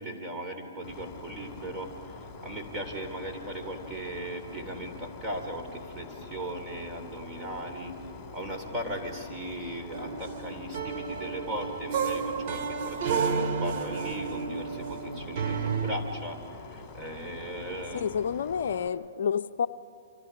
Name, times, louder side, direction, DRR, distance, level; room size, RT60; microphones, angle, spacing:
voice 1, 0.0-8.0 8.3-18.2, right 1 dB, 15° right, 2 dB, 3.7 m, -38 dB
sound 1, 0.8-18.9, left 4 dB, 15° left, 3.3 m, -45 dB
sound 2, 9.9-15.9, right 6 dB, 45° right, 2.3 m, -31 dB
voice 2, 17.9-19.7, left 7 dB, 65° left, 10 dB, 0.6 m, -29 dB
29.0 x 26.0 x 4.9 m, 2.7 s
hypercardioid pair, 130°, 0 cm